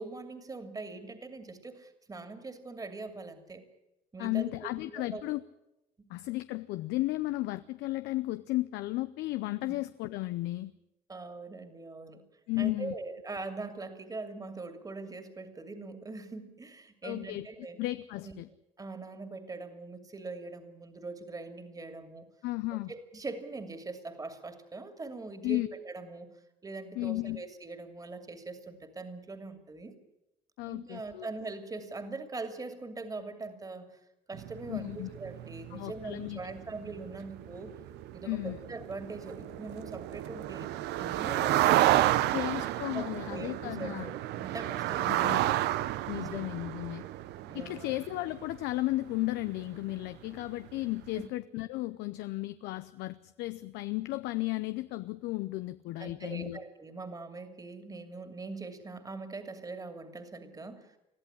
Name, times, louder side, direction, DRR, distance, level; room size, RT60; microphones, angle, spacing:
voice 1, 0.0-3.6 4.1-5.2 6.0-6.1 11.1-12.2 12.6-17.8 18.2-18.3 18.8-22.3 22.9-26.3 26.6-29.9 30.7-33.9 34.3-37.7 38.1-42.3 42.9-45.5 46.1-46.4 47.4-47.9 56.0-61.0, right 3 dB, 20° right, 2.6 m, -42 dB
voice 2, 4.2-5.4 6.1-10.7 12.5-12.9 17.0-17.5 17.8-18.5 22.4-22.9 25.4-25.7 27.0-27.4 30.6-31.3 34.7-35.1 35.7-36.4 38.2-38.6 42.3-44.1 45.1-45.4 46.1-47.0 47.5-56.6, left 19 dB, 90° left, 0.7 m, -34 dB
sound 1, 34.3-49.7 49.9-50.3 50.7-50.9, right 14 dB, 85° right, 0.8 m, -31 dB
22.0 x 14.0 x 9.9 m
cardioid pair, 110°, 17 cm